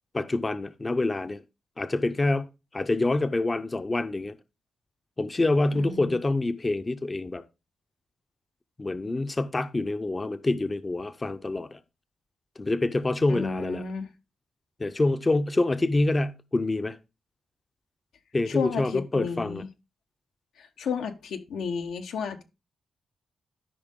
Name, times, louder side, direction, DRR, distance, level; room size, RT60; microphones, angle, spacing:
voice 1, 0.1-1.4 1.8-2.5 2.7-4.4 5.2-7.4 8.8-11.8 12.6-13.8 14.8-17.0 18.3-19.6, left 2 dB, 25° left, 0.6 m, -26 dB
voice 2, 5.7-6.2 13.3-14.1 18.5-19.7 20.6-22.4, left 5 dB, 90° left, 1.1 m, -32 dB
12.5 x 5.4 x 3.7 m
cardioid pair, 110°, 0 cm